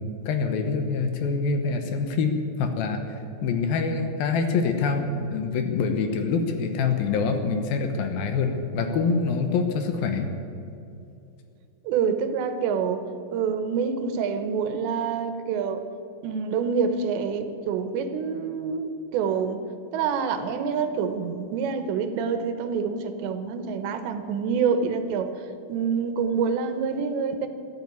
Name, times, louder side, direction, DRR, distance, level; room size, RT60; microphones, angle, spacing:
voice 1, 0.0-3.0 3.4-10.3, left 4 dB, 70° left, 6 dB, 2.6 m, -25 dB
voice 2, 11.8-15.8 16.2-19.6 19.9-25.4 25.7-27.5, right 6 dB, 85° right, 8 dB, 3.3 m, -27 dB
13.5 x 11.0 x 9.3 m, 2.7 s
omnidirectional pair, 5.0 m